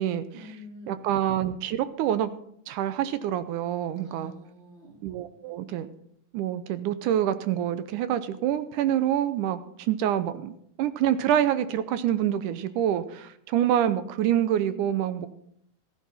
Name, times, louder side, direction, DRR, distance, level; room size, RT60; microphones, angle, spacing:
voice 1, 0.3-1.0 4.0-5.0, left 1 dB, 15° right, -2 dB, 3.8 m, -46 dB
voice 2, 0.9-2.3 2.7-4.3 5.0-5.9 6.3-10.5 10.8-15.3, right 10 dB, 75° right, 12 dB, 2.0 m, -26 dB
15.0 x 14.0 x 4.2 m, 0.70 s
omnidirectional pair, 3.9 m